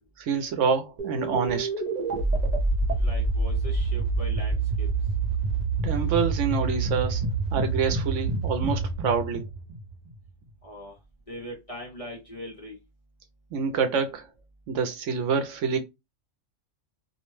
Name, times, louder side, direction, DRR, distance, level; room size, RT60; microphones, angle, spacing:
voice 1, 0.2-1.7 5.8-7.2 7.5-9.5 13.5-14.2 14.7-15.8, right 6 dB, 75° right, 0.9 m, -27 dB
sound 1, 1.0-10.3, right 3 dB, 45° right, 0.6 m, -27 dB
voice 2, 3.0-4.9 10.6-10.9 11.3-12.8, left 1 dB, 35° left, 0.6 m, -40 dB
2.5 x 2.1 x 3.0 m
omnidirectional pair, 1.3 m